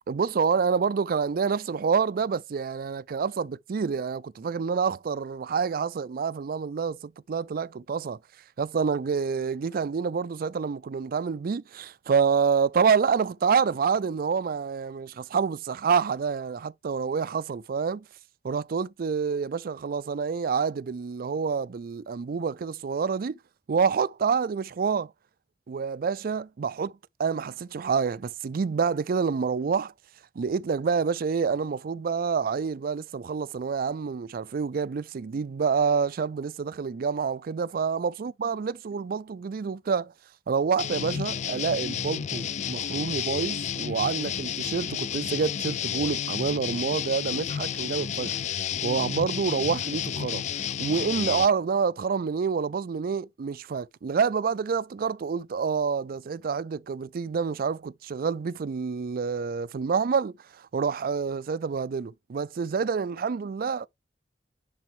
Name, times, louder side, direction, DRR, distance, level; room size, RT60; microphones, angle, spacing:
voice 1, 0.1-8.2 8.6-18.0 18.4-23.4 23.7-25.1 25.7-26.9 27.2-29.9 30.4-40.1 40.5-50.4 50.8-63.9, right 5 dB, 55° right, 0.4 m, -27 dB
sound 1, 40.8-51.5, left 9 dB, 40° left, 0.3 m, -31 dB
10.5 x 4.0 x 3.2 m
head